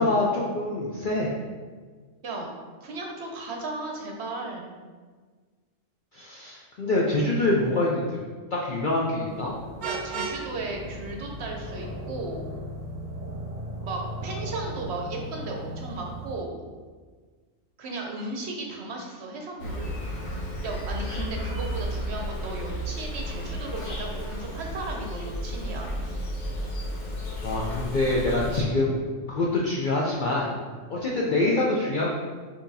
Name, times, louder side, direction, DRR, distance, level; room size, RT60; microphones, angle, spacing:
voice 1, 0.0-1.3 6.1-8.2 8.5-9.5 27.4-29.0 29.3-30.6 30.9-32.1, left 2 dB, 60° left, -4 dB, 0.5 m, -25 dB
voice 2, 2.8-4.8 9.8-12.5 13.8-16.6 17.8-20.0 20.6-25.9, right 2 dB, 60° right, 0 dB, 0.8 m, -35 dB
sound 1, 9.2-16.4, equal, 10° right, 1.0 m, -37 dB
Vehicle horn car horn honking, 9.8-10.4, right 6 dB, 85° right, 0.4 m, -32 dB
Insect, 19.6-28.6, equal, 80° left, 1.4 m, -33 dB
5.9 x 2.9 x 2.7 m, 1.5 s
omnidirectional pair, 1.3 m